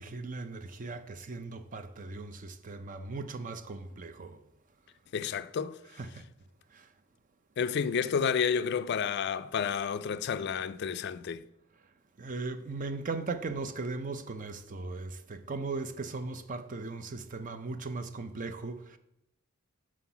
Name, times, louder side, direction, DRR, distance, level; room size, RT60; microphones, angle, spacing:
voice 1, 0.0-4.4 5.8-6.3 6.7-6.9 12.2-19.0, right 3 dB, 40° right, 0.5 m, -38 dB
voice 2, 5.1-5.8 7.6-11.4, left 6 dB, 50° left, 0.3 m, -30 dB
6.2 x 5.7 x 5.7 m
head